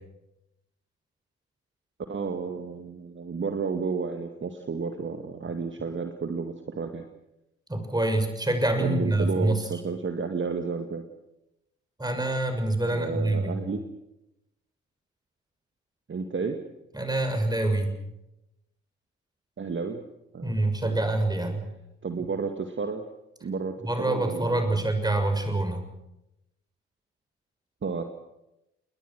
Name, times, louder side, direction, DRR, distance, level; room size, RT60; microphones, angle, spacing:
voice 1, 2.1-7.1 8.8-11.1 12.9-13.8 16.1-16.6 19.6-20.0 20.3-20.6 20.8-21.2 22.0-23.0 23.4-24.8 27.8-28.0, right 5 dB, 35° right, 6 dB, 2.1 m, -32 dB
voice 2, 7.7-9.6 12.0-13.6 16.9-17.9 20.4-21.6 23.8-25.8, right 2 dB, 10° right, 6 dB, 6.6 m, -26 dB
29.5 x 21.0 x 6.3 m, 0.89 s
figure-of-eight pair, 40°, 33 cm